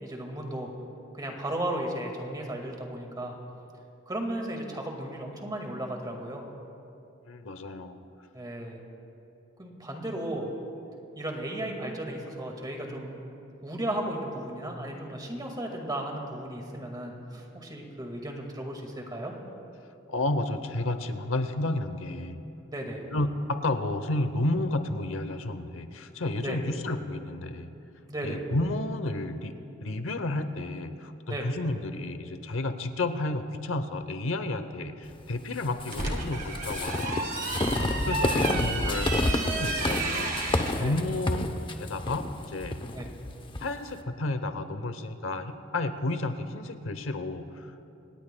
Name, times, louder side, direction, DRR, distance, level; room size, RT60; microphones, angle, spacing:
voice 1, 0.0-0.7 1.1-3.4 4.1-6.5 8.3-8.8 9.6-10.5 11.2-13.1 13.6-19.3 22.7-23.0 26.4-26.6 28.1-28.4 31.3-31.5 37.8-38.5 38.8-39.0 40.8-41.0 42.9-43.1, right 1 dB, 20° right, 2 dB, 1.9 m, -35 dB
voice 2, 7.3-8.0 20.1-22.4 23.1-27.7 28.2-29.5 29.8-41.5 41.8-42.8 43.6-47.7, left 2 dB, 75° left, 10 dB, 0.8 m, -31 dB
sound 1, 35.7-40.8, right 3 dB, 45° right, 1.7 m, -32 dB
sound 2, 35.8-43.7, left 2 dB, 25° left, 0.7 m, -30 dB
27.0 x 18.5 x 2.3 m, 2.7 s
head